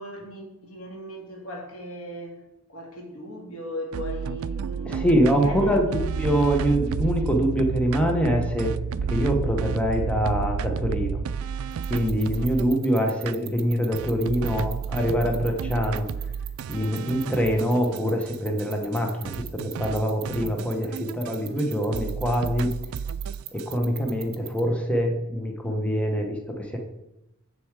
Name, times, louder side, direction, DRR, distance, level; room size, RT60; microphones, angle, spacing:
voice 1, 0.0-2.4 2.7-5.0 5.4-6.1, equal, 85° left, 0 dB, 2.2 m, -38 dB
sound 1, 3.9-12.8 13.3-13.4 13.9-18.3 18.6-18.7 18.9-19.0 19.2-21.7 21.9-23.7, right 6 dB, 70° right, 0.3 m, -31 dB
voice 2, 4.8-8.7 9.1-11.2 11.9-16.1 16.7-22.8 23.5-26.8, equal, 5° left, 2 dB, 1.0 m, -24 dB
sound 2, 11.7-24.6, right 16 dB, 45° right, 0.7 m, -38 dB
7.1 x 6.9 x 4.7 m, 0.91 s
head